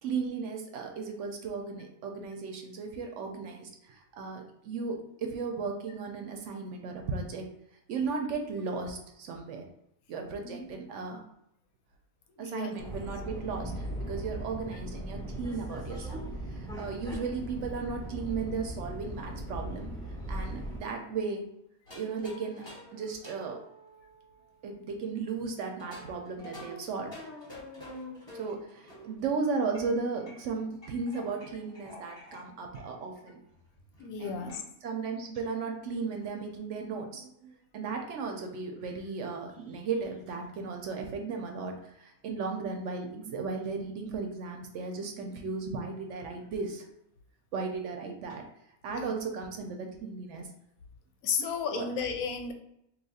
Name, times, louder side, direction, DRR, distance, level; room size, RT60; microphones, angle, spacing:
voice 1, 0.0-7.5 7.9-9.7 10.1-11.2 12.4-16.2 16.5-19.9 20.3-21.4 21.9-22.6 22.9-23.6 24.6-27.1 28.3-33.4 34.2-46.9 47.5-48.5 48.8-50.5 51.4-51.9, right 4 dB, 65° right, 3 dB, 0.8 m, -35 dB
voice 2, 12.4-12.8 34.0-34.6 48.9-49.1 51.2-52.5, left 6 dB, 85° left, 5 dB, 1.0 m, -33 dB
Subway metro underground, 12.8-20.8, right 1 dB, 5° left, 0.4 m, -38 dB
sound 1, 21.9-24.9 25.6-29.2 29.7-32.4 32.7-32.9 33.2-33.3 33.5-34.6, left 1 dB, 20° left, 0.9 m, -48 dB
2.8 x 2.3 x 4.0 m, 0.78 s
omnidirectional pair, 1.5 m